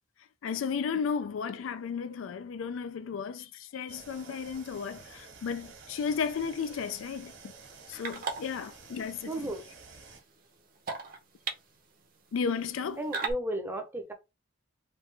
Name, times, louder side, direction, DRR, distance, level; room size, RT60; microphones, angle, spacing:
voice 1, 0.4-7.5 7.9-9.5 12.3-13.0, left 6 dB, 80° left, 0.4 m, -34 dB
sound 1, 3.9-10.2, right 4 dB, 70° right, 1.3 m, -51 dB
sound 2, 5.9-13.3, right 4 dB, 45° right, 0.7 m, -42 dB
voice 2, 9.2-9.7 13.0-14.1, right 1 dB, 10° right, 0.6 m, -34 dB
3.2 x 2.3 x 3.3 m
head